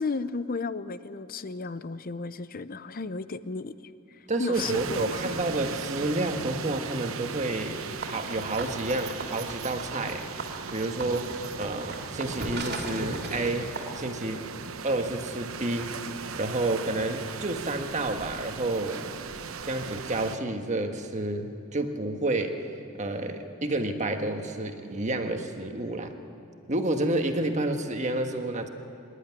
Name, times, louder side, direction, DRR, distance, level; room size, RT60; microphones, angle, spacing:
voice 1, 0.0-3.7 4.4-5.4, left 4 dB, 45° left, 14 dB, 0.6 m, -33 dB
voice 2, 4.3-10.3 10.7-14.6 14.8-15.9 16.4-19.0 19.7-22.6 23.0-26.1 26.7-28.7, right 2 dB, 35° right, 5 dB, 1.4 m, -30 dB
sound 1, 4.5-20.4, right 6 dB, 85° right, 0.9 m, -38 dB
sound 2, 8.0-14.0, right 2 dB, 50° right, 2.6 m, -38 dB
25.0 x 11.5 x 9.8 m, 2.7 s
head